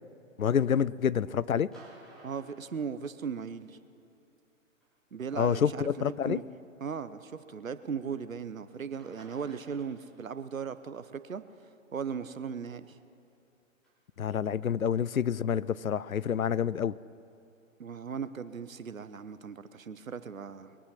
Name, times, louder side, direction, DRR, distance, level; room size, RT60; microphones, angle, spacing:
voice 1, 0.4-1.7 5.4-5.7 6.0-6.4 14.2-16.9, left 8 dB, 85° left, 20 dB, 0.5 m, -28 dB
sound 1, 1.7-3.5 4.8-4.9 5.8-5.9 8.7-8.8 9.0-10.4 13.8-13.9, right 2 dB, ahead, 4.0 m, -55 dB
voice 2, 2.2-3.8 5.1-6.4 6.8-11.4 11.9-13.0 17.8-20.8, right 6 dB, 75° right, 13 dB, 0.8 m, -37 dB
22.5 x 8.4 x 5.9 m, 2.6 s
figure-of-eight pair, 120°, 40 cm